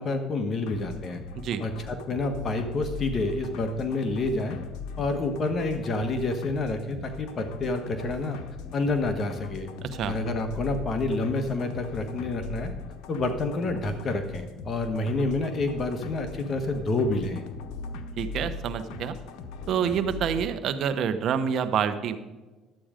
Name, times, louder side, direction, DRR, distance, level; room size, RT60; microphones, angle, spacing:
voice 1, 0.0-1.2 1.6-4.6 5.0-8.4 8.7-9.7 10.1-12.7 13.1-17.4, left 2 dB, 40° left, 7 dB, 1.3 m, -28 dB
sound 1, 0.6-20.5, left 4 dB, 80° left, 1.0 m, -40 dB
voice 2, 18.2-19.2 19.7-22.2, right 8 dB, 60° right, 10 dB, 1.0 m, -27 dB
11.5 x 8.7 x 5.1 m, 1.2 s
cardioid pair, 110°, 0 cm